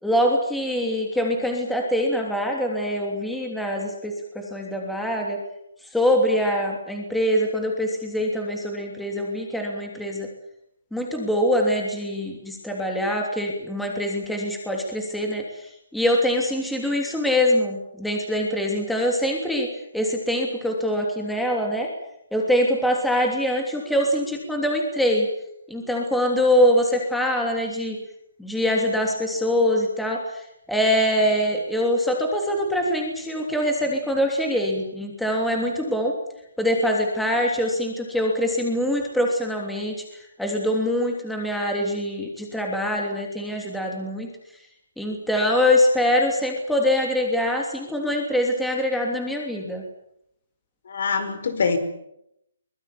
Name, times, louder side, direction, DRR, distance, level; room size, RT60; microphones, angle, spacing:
voice 1, 0.0-5.4 5.9-10.3 10.9-19.7 19.9-21.9 22.3-25.3 25.7-28.0 28.4-36.1 36.6-44.3 45.0-49.8, equal, ahead, 1 dB, 3.1 m, -24 dB
voice 2, 50.9-51.8, left 5 dB, 55° left, 12 dB, 5.1 m, -24 dB
24.0 x 21.0 x 8.6 m, 0.79 s
hypercardioid pair, 170°, 0 cm